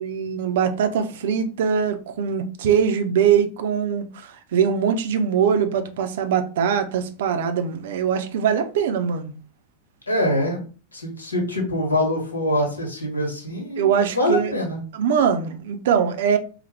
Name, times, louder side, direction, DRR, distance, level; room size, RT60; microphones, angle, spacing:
voice 1, 0.0-9.3 13.8-14.5 14.9-16.4, right 7 dB, 55° right, 0.5 m, -22 dB
voice 2, 10.1-10.6 10.9-14.8, left 1 dB, 75° left, 1.2 m, -24 dB
4.1 x 2.1 x 3.3 m
figure-of-eight pair, 90°, 0 cm